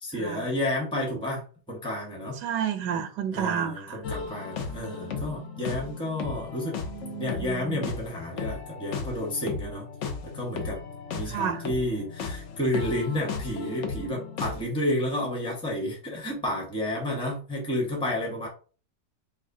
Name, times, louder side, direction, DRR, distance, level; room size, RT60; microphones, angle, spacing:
voice 1, 0.0-2.4 3.3-6.9 7.2-9.9 10.2-10.8 11.1-18.5, left 1 dB, 5° left, 0.8 m, -31 dB
voice 2, 2.4-4.0 6.9-7.9 11.3-11.6, right 8 dB, 75° right, 1.2 m, -31 dB
sound 1, 4.0-14.6, left 5 dB, 60° left, 0.8 m, -35 dB
4.8 x 2.4 x 2.6 m
omnidirectional pair, 1.9 m